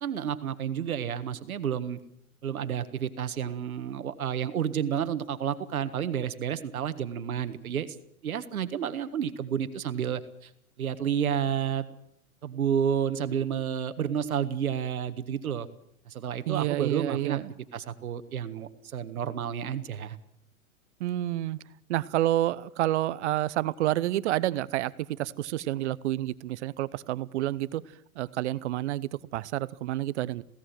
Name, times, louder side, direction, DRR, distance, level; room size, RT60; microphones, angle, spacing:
voice 1, 0.0-2.0 2.4-7.9 8.2-10.5 10.8-11.9 12.4-15.7 16.1-17.4 17.7-20.2, right 8 dB, 75° right, 1.7 m, -30 dB
voice 2, 16.5-17.4 21.0-21.6 21.9-24.9 25.2-27.8 28.2-30.4, right 14 dB, 50° right, 0.9 m, -29 dB
22.0 x 17.0 x 7.8 m
hypercardioid pair, 115°, 43 cm